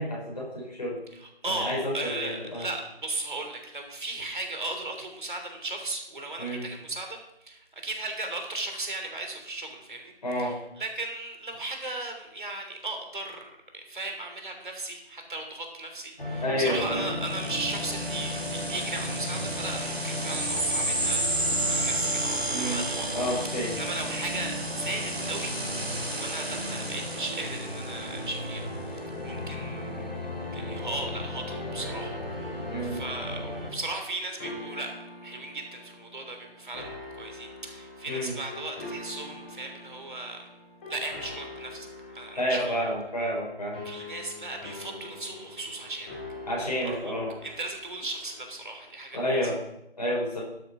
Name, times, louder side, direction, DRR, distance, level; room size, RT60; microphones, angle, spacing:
voice 1, 0.0-1.0 1.4-2.7 6.4-6.7 10.2-10.5 16.4-17.1 22.5-22.8 23.1-23.8 32.7-33.0 38.1-38.3 42.4-44.1 46.5-47.3 49.1-49.6 50.0-50.4, equal, 40° left, -3 dB, 5.5 m, -30 dB
voice 2, 1.1-13.5 13.7-21.3 21.7-23.1 23.4-25.5 26.1-29.9 30.5-40.4 40.9-41.9 42.1-42.8 43.8-46.2 47.0-47.2 47.4-49.2, right 2 dB, 50° right, 4 dB, 3.2 m, -36 dB
sound 1, 16.2-33.7, left 1 dB, 60° left, 3.1 m, -35 dB
sound 2, 17.2-28.3, right 1 dB, 75° right, 3.3 m, -32 dB
sound 3, 30.5-48.5, left 2 dB, 10° left, 1.6 m, -44 dB
12.5 x 7.2 x 5.9 m, 0.84 s
figure-of-eight pair, 160°, 31 cm